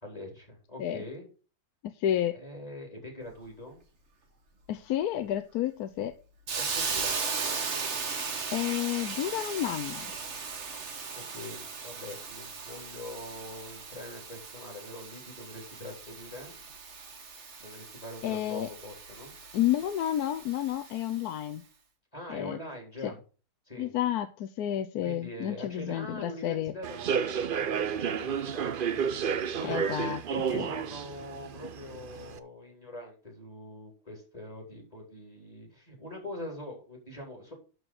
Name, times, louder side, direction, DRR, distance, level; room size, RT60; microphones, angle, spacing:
voice 1, 0.0-1.3 2.3-3.8 6.5-7.2 11.1-16.6 17.6-19.3 22.1-23.2 23.7-23.9 25.0-29.9 30.3-37.5, left 1 dB, 20° left, 0 dB, 3.6 m, -43 dB
voice 2, 1.8-2.4 4.7-6.2 8.5-10.1 18.2-18.7 19.5-21.6 22.3-22.6 23.0-23.1 23.8-26.7 29.6-30.2 30.5-30.7, left 12 dB, 70° left, 9 dB, 1.1 m, -30 dB
Hiss, 6.5-21.3, right 5 dB, 45° right, 1.5 m, -37 dB
Human voice / Subway metro underground, 26.8-32.4, right 7 dB, 75° right, 0.5 m, -31 dB
11.5 x 4.6 x 6.3 m, 0.36 s
omnidirectional pair, 1.8 m